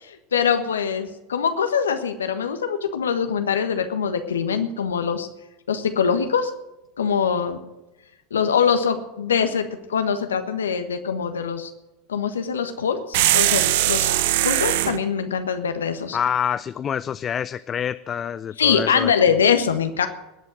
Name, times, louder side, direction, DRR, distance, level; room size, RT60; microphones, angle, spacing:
voice 1, 0.0-5.3 5.7-6.5 7.0-7.6 8.3-11.7 12.1-14.1 14.4-16.2 18.6-20.1, left 7 dB, 80° left, 8 dB, 1.3 m, -23 dB
sound 1, 13.1-15.0, right 14 dB, 65° right, 0.8 m, -20 dB
voice 2, 16.1-19.1, left 8 dB, 30° left, 14 dB, 0.4 m, -26 dB
20.5 x 8.2 x 6.3 m, 0.98 s
figure-of-eight pair, 80°, 0 cm